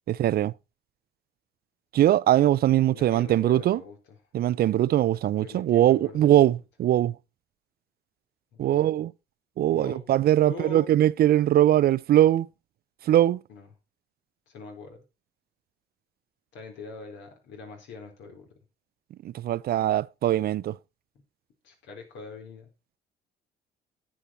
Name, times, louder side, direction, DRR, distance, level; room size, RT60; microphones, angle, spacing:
voice 1, 0.1-0.5 1.9-3.8 4.3-7.2 8.6-9.1 9.6-12.5 13.0-13.4 19.2-20.8, right 12 dB, 55° right, 0.5 m, -21 dB
voice 2, 2.9-4.0 5.4-6.5 8.5-8.9 9.7-10.1 10.4-11.0 13.5-13.7 14.5-15.0 16.5-18.5 21.6-22.7, left 4 dB, 80° left, 4.0 m, -43 dB
9.9 x 8.9 x 4.4 m
supercardioid pair, 80°, 19 cm